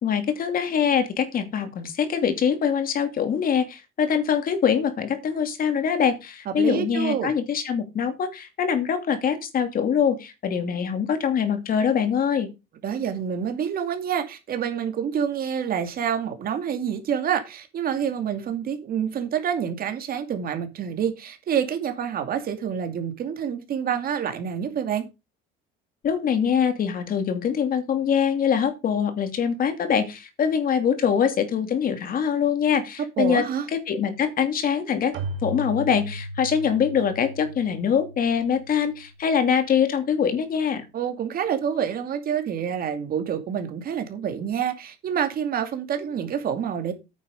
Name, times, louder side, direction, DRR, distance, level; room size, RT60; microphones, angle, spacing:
voice 1, 0.0-12.5 26.0-33.4 33.7-35.1 35.4-40.8, left 7 dB, 45° left, 2.6 m, -23 dB
voice 2, 6.5-7.3 12.8-25.0 33.2-33.7 40.9-46.9, right 8 dB, 50° right, 2.4 m, -27 dB
Keyboard (musical), 35.1-39.6, right 1 dB, 65° right, 2.7 m, -37 dB
9.3 x 7.3 x 5.4 m
cardioid pair, 125°, 20 cm